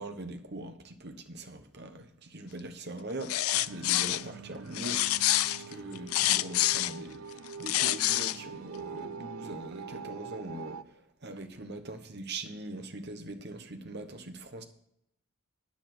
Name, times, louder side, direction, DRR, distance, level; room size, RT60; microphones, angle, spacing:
voice 1, 0.0-3.4 3.7-5.3 5.7-14.6, right 2 dB, 50° right, 1.2 m, -42 dB
sound 1, 3.2-4.2 4.7-6.9 7.5-8.4, left 15 dB, 85° left, 0.4 m, -27 dB
sound 2, 3.5-10.8, right 6 dB, 75° right, 0.5 m, -44 dB
10.0 x 8.6 x 6.0 m
head